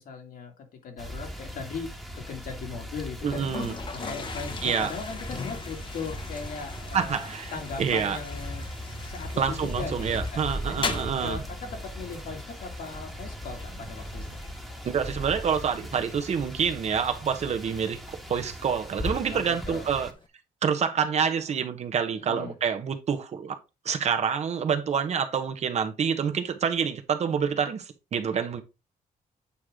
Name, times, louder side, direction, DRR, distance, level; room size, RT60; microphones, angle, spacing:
voice 1, 0.0-3.4 4.0-10.9 11.2-14.4 19.3-19.9 22.2-22.5, left 5 dB, 70° left, 2.4 m, -39 dB
sound 1, 1.0-20.1, equal, ahead, 1.4 m, -38 dB
Toilet flush, 3.2-20.3, left 4 dB, 35° left, 1.0 m, -41 dB
voice 2, 3.2-3.7 4.6-4.9 6.9-7.5 7.8-8.2 9.4-11.4 14.8-20.1 20.6-23.6 23.8-28.6, right 7 dB, 50° right, 1.1 m, -27 dB
8.5 x 4.8 x 3.7 m
cardioid pair, 140°, 15 cm